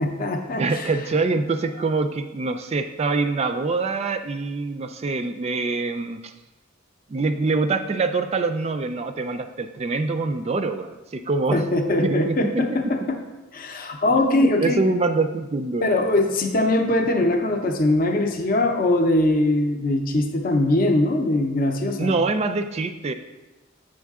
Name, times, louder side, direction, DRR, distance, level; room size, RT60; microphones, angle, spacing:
voice 1, 0.0-0.9 11.5-13.2 13.5-14.8 15.8-22.1, left 2 dB, 45° left, 4 dB, 0.6 m, -21 dB
voice 2, 0.6-6.3 7.1-11.6 12.0-12.9 14.2-15.9 22.0-23.1, right 3 dB, 30° right, 8 dB, 0.3 m, -25 dB
7.3 x 6.3 x 3.6 m, 1.1 s
head